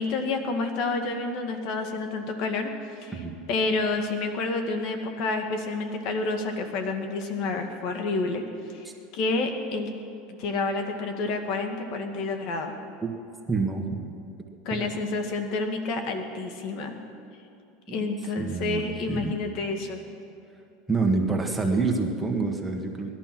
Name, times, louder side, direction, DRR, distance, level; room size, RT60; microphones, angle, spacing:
voice 1, 0.0-2.7 3.0-3.1 3.5-8.4 8.7-8.9 9.1-9.9 10.3-12.8 14.7-16.9 17.9-20.0, left 3 dB, 60° left, 5 dB, 1.9 m, -29 dB
voice 2, 13.5-14.1 17.9-18.1 18.4-19.4 20.9-23.1, right 3 dB, 5° right, -1 dB, 1.8 m, -27 dB
19.5 x 12.0 x 6.1 m, 2.5 s
supercardioid pair, 120°, 0 cm